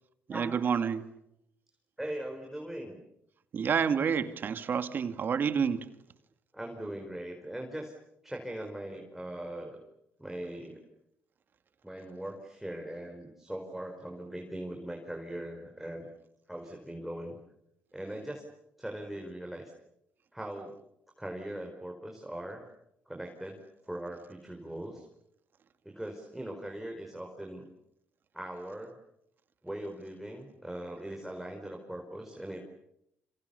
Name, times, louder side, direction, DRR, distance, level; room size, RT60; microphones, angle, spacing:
voice 1, 0.3-1.0 3.5-5.9, right 6 dB, 50° right, 9 dB, 2.3 m, -29 dB
voice 2, 2.0-3.0 6.5-7.9 8.2-9.8 10.2-10.8 11.8-16.1 16.5-17.4 17.9-18.4 18.8-19.7 20.3-20.8 21.2-22.6 23.1-23.6 23.8-25.1 25.8-27.7 28.3-29.0 29.6-32.6, right 1 dB, 5° right, 2 dB, 4.9 m, -40 dB
29.5 x 27.0 x 7.0 m, 0.81 s
cardioid pair, 90°, 4 cm